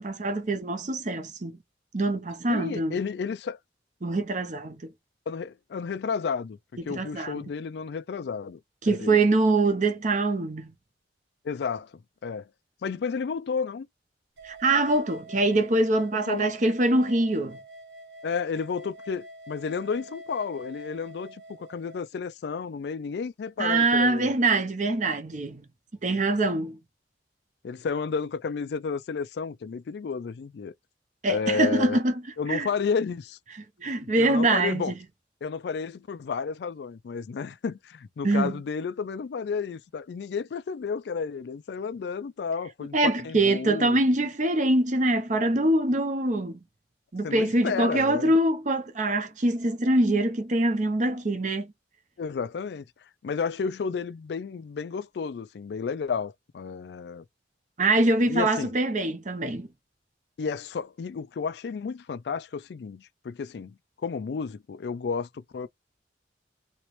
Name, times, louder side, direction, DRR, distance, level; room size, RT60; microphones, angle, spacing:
voice 1, 0.0-1.6 1.9-3.0 4.0-4.8 6.9-7.4 8.8-10.7 14.4-17.6 23.6-25.6 26.0-26.8 31.2-32.2 32.5-32.7 33.8-35.0 38.2-38.6 42.9-46.6 47.1-51.7 57.8-59.7, right 2 dB, 45° right, 0.7 m, -24 dB
voice 2, 2.5-3.6 5.3-8.6 8.9-9.2 11.4-11.9 12.2-12.5 12.8-13.9 16.3-16.5 18.2-24.3 27.6-30.7 31.3-32.0 32.4-33.4 34.2-34.9 35.4-44.0 47.2-48.3 52.2-52.8 53.2-57.2 58.2-58.7 60.4-65.7, left 5 dB, 65° left, 0.4 m, -32 dB
sound 1, 14.4-22.0, equal, 80° right, 0.8 m, -45 dB
3.0 x 2.9 x 3.1 m
head